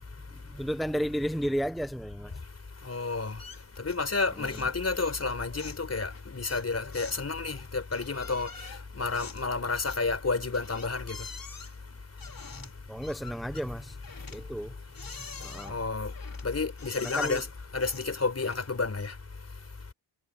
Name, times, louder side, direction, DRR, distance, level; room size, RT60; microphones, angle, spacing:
voice 1, 0.3-2.4 4.3-4.7 12.5-14.0 14.2-14.8 15.0-15.8 17.0-17.4, equal, ahead, 1.0 m, -34 dB
voice 2, 2.9-3.4 3.8-8.5 9.0-11.2 15.7-16.1 16.4-17.4 17.7-19.1, left 4 dB, 35° left, 4.6 m, -30 dB
sound 1, 3.4-4.1 4.4-4.8 5.0-18.8, left 5 dB, 55° left, 4.5 m, -47 dB
wide cardioid pair, 145°, 41 cm